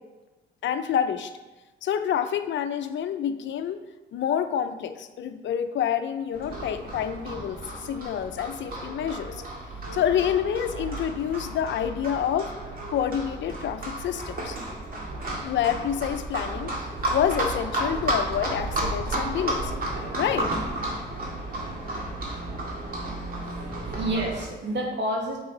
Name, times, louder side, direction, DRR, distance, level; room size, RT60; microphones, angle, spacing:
voice 1, 0.6-1.3 1.8-3.8 4.1-9.4 9.9-12.5 12.9-14.6 15.4-16.7 17.1-19.7 20.2-20.5, left 9 dB, 70° left, 9 dB, 0.6 m, -28 dB
Livestock farm animals working animals, 6.3-24.4, right 1 dB, 45° right, 2.1 m, -32 dB
voice 2, 23.5-25.4, right 1 dB, 65° right, -1 dB, 1.8 m, -29 dB
6.9 x 5.6 x 4.0 m, 1.1 s
cardioid pair, 90°, 20 cm